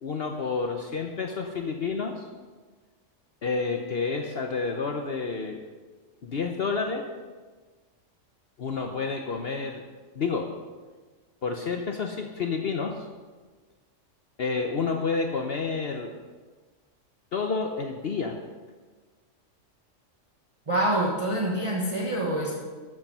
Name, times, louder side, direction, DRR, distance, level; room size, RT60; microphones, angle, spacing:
voice 1, 0.0-2.3 3.4-5.6 6.2-7.0 8.6-9.8 10.1-10.5 11.4-13.0 14.4-16.1 17.3-18.4, left 4 dB, 55° left, 3 dB, 1.0 m, -29 dB
voice 2, 20.7-22.5, right 1 dB, 25° right, -3 dB, 1.4 m, -26 dB
13.0 x 7.3 x 5.4 m, 1.4 s
omnidirectional pair, 1.3 m